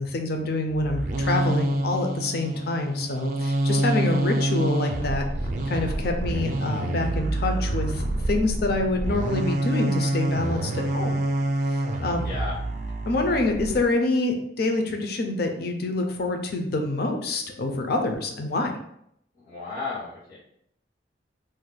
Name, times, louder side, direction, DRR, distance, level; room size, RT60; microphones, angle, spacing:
voice 1, 0.0-5.2 5.7-11.2 11.7-12.2 13.0-18.7, left 2 dB, 60° left, 4 dB, 0.5 m, -26 dB
sound 1, 0.7-13.8, right 1 dB, 45° right, 0.4 m, -27 dB
voice 2, 12.2-12.5 19.4-20.4, left 3 dB, 85° left, -9 dB, 1.1 m, -34 dB
2.6 x 2.2 x 4.0 m, 0.73 s
head